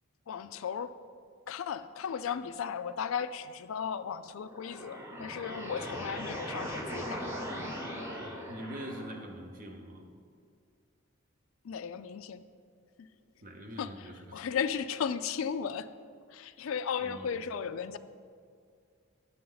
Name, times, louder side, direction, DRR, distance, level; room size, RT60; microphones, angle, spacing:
voice 1, 0.3-0.9 1.5-7.4 11.6-12.5 13.8-15.9 16.3-18.0, left 7 dB, 75° left, 12 dB, 0.4 m, -35 dB
sound 1, 4.4-9.3, equal, 10° right, 1.0 m, -39 dB
voice 2, 8.5-10.1 13.4-14.5 17.0-17.4, equal, 40° right, 3 dB, 0.9 m, -44 dB
10.0 x 8.4 x 3.9 m, 2.2 s
head